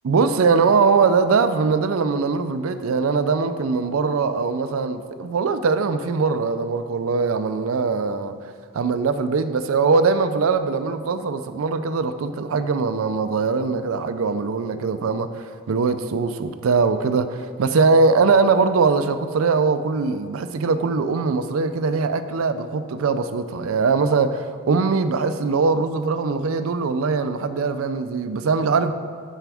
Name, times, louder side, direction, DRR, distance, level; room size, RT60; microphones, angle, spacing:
voice 1, 0.0-8.3 8.7-28.9, right 4 dB, 80° right, 11 dB, 0.4 m, -21 dB
12.0 x 4.6 x 3.4 m, 2.3 s
head